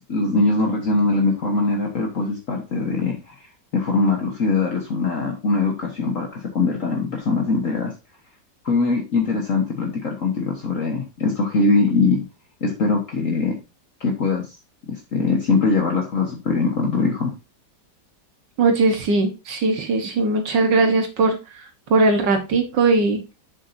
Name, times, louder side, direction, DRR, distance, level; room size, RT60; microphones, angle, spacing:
voice 1, 0.1-3.4 3.7-7.9 8.6-12.2 12.6-13.6 14.0-14.5 14.9-17.3, left 3 dB, 50° left, 1 dB, 1.6 m, -22 dB
voice 2, 18.6-23.2, right 3 dB, 75° right, 5 dB, 1.9 m, -20 dB
7.9 x 7.4 x 2.7 m, 0.27 s
omnidirectional pair, 1.9 m